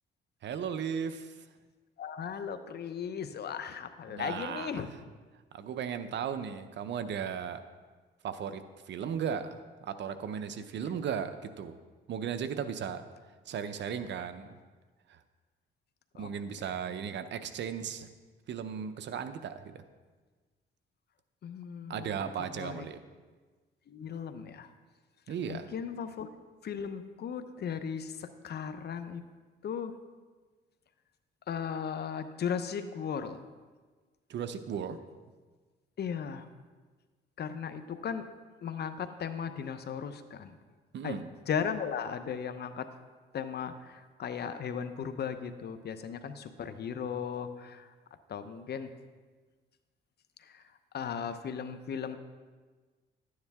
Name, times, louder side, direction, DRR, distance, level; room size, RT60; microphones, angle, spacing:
voice 1, 0.4-1.4 4.1-4.9 5.5-7.6 8.2-8.6 8.9-11.8 12.1-13.0 13.5-14.6 15.1-15.2 16.2-18.1 18.5-19.8 21.9-23.0 25.3-25.7 34.3-35.0 40.9-41.3, right 7 dB, 65° right, 10 dB, 0.7 m, -36 dB
voice 2, 2.0-4.9 16.1-16.3 21.4-22.9 23.9-24.7 25.5-26.3 26.6-29.2 29.6-29.9 31.5-33.4 36.0-36.5 37.4-38.3 38.6-40.6 41.0-41.2 41.5-42.9 43.3-47.9 48.3-48.9 50.4-50.6 50.9-52.2, left 7 dB, 55° left, 10 dB, 0.8 m, -36 dB
12.0 x 9.6 x 3.6 m, 1.4 s
cardioid pair, 90°, 20 cm